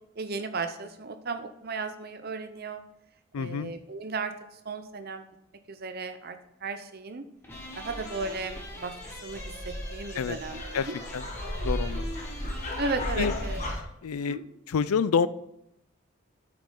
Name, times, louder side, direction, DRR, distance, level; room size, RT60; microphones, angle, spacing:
voice 1, 0.2-2.8 3.4-5.3 5.7-7.2 7.8-8.9 9.2-11.0 12.8-13.7 14.2-14.4, right 3 dB, 45° right, 8 dB, 0.7 m, -35 dB
voice 2, 3.3-3.7 10.2-10.4 10.7-10.9 11.1-11.2 11.6-12.2 13.2-13.3 14.0-14.4 14.7-15.3, left 6 dB, 85° left, 16 dB, 0.4 m, -27 dB
sound 1, 7.4-13.8, equal, 10° left, 1.5 m, -43 dB
sound 2, 7.5-13.8, left 1 dB, 35° left, 1.2 m, -35 dB
8.4 x 6.2 x 3.8 m, 0.80 s
head